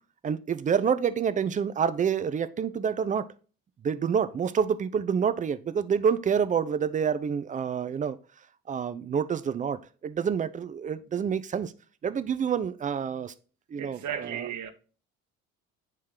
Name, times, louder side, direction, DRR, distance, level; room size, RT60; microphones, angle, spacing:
voice 1, 0.2-3.3 3.8-8.2 8.7-11.7 12.0-13.3 13.7-14.5, right 7 dB, 20° right, 0.4 m, -28 dB
voice 2, 13.8-14.7, right 9 dB, 45° right, 0.9 m, -35 dB
8.9 x 3.1 x 3.7 m
hypercardioid pair, 55°, 41 cm